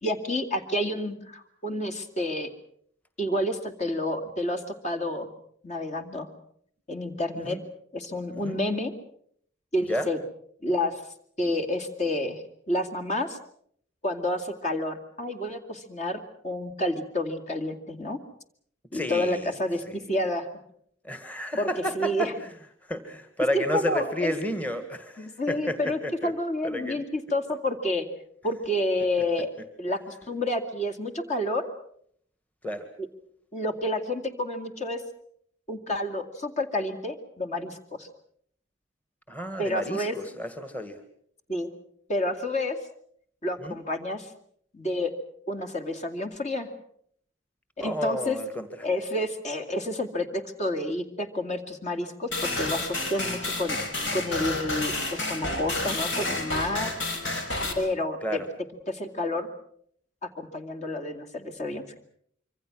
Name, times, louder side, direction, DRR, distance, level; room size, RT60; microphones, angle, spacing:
voice 1, 0.0-2.5 3.2-5.3 5.6-6.3 6.9-7.6 7.9-8.9 9.7-10.2 10.6-11.0 11.4-13.4 14.0-18.2 18.9-20.5 21.6-21.7 21.9-22.3 23.5-24.3 25.2-28.0 28.4-29.5 29.8-31.7 33.5-35.0 35.7-38.1 39.6-40.1 41.5-41.7 42.1-42.8 43.4-44.3 44.7-45.1 45.5-46.7 47.8-48.4 48.8-53.8 54.1-56.9 57.8-58.4 58.9-59.5 60.2-61.8, left 1 dB, 40° left, 6 dB, 2.4 m, -29 dB
voice 2, 18.9-19.5 19.9-20.1 21.0-22.5 22.9-26.3 26.6-27.0 32.6-32.8 39.3-41.0 43.6-43.8 47.8-48.7 58.2-58.5, equal, 10° left, 8 dB, 1.8 m, -31 dB
sound 1, 52.3-57.7, left 2 dB, 70° left, 5.0 m, -30 dB
26.0 x 24.5 x 6.2 m, 0.66 s
head